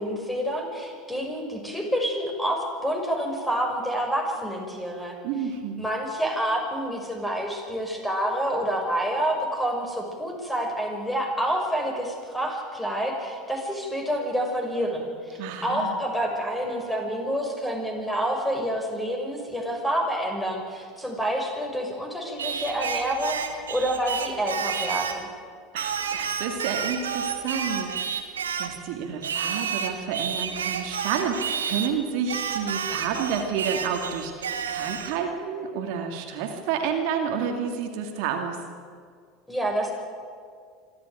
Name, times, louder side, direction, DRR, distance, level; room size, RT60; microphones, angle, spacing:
voice 1, 0.0-5.2 5.8-25.3 39.5-39.9, equal, 5° left, 2 dB, 6.2 m, -28 dB
voice 2, 5.2-5.8 15.4-16.0 25.7-28.3 28.6-38.6, right 7 dB, 60° right, 4 dB, 2.3 m, -30 dB
Singing, 22.4-25.2 25.8-28.8 29.2-31.9 32.3-35.2, right 7 dB, 80° right, 1.7 m, -30 dB
26.0 x 13.0 x 9.4 m, 2.1 s
figure-of-eight pair, 75°, 0 cm